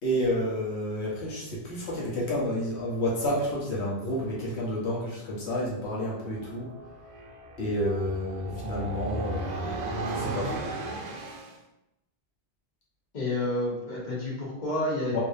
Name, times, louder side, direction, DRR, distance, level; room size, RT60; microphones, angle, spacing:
voice 1, 0.0-6.7 7.6-9.7 10.1-10.6 15.1-15.2, equal, 90° left, -5 dB, 1.1 m, -30 dB
sound 1, 6.1-11.6, right 2 dB, 55° right, 0.5 m, -35 dB
voice 2, 13.1-15.2, left 1 dB, 45° left, -6 dB, 1.2 m, -29 dB
3.3 x 2.7 x 2.6 m, 0.87 s
omnidirectional pair, 1.1 m